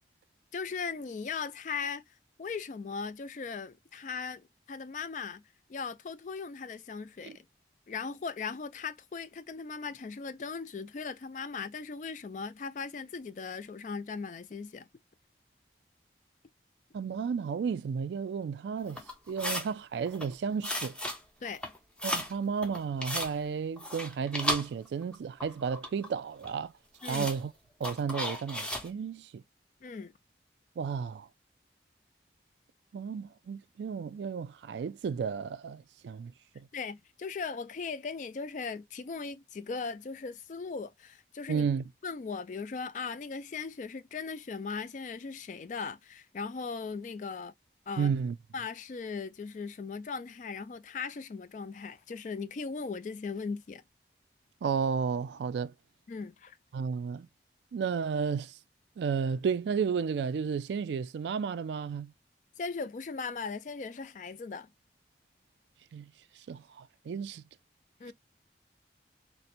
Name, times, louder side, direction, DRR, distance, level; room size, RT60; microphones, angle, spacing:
voice 1, 0.5-2.0 2.4-5.4 5.7-7.4 7.9-14.9 21.4-21.6 27.0-27.3 29.8-30.1 36.7-41.7 42.0-47.5 47.9-48.1 48.5-53.8 56.1-56.6 62.6-64.7 68.0-68.1, left 5 dB, 45° left, 0.3 m, -38 dB
voice 2, 16.9-19.0 19.3-21.0 22.0-26.7 27.1-27.5 27.8-29.4 30.8-31.3 32.9-36.7 41.5-41.9 48.0-48.4 54.6-55.7 56.7-57.3 57.7-58.6 59.0-62.1 65.9-66.1 66.5-67.4, right 6 dB, 75° right, 0.3 m, -33 dB
sound 1, 18.9-19.7 20.1-20.3 20.6-21.2 21.5-22.3 22.6-23.3 23.8-25.2 25.4-26.1 26.4-26.5 27.0-27.4 27.8-28.9, left 1 dB, 5° left, 0.6 m, -35 dB
4.2 x 2.1 x 2.5 m
head